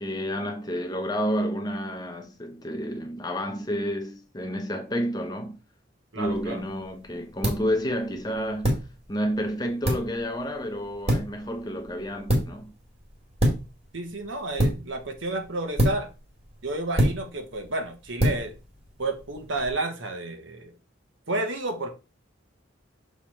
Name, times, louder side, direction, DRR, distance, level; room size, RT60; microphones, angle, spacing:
voice 1, 0.0-5.6 6.1-8.8 9.1-12.7, equal, 20° left, 0.8 m, -30 dB
voice 2, 6.1-6.6 13.9-16.1 16.6-18.5 19.0-20.7 21.3-21.9, right 2 dB, 75° right, 1.2 m, -31 dB
sound 1, 6.2-19.7, right 1 dB, 30° right, 1.9 m, -29 dB
6.3 x 3.6 x 4.3 m
head